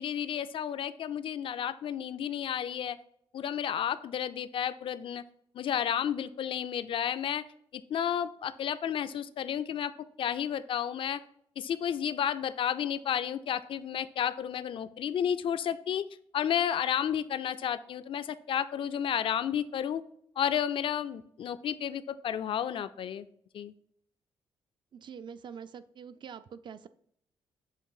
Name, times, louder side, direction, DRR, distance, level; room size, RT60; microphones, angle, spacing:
voice 1, 0.0-3.0 3.3-5.2 5.5-7.4 7.7-9.9 10.2-11.2 11.6-16.1 16.3-20.0 20.4-23.2 23.5-23.7, left 9 dB, 60° left, 13 dB, 0.4 m, -32 dB
voice 2, 24.9-26.9, right 7 dB, 50° right, 13 dB, 0.4 m, -45 dB
7.6 x 2.6 x 4.8 m, 0.66 s
cardioid pair, 85°, 10 cm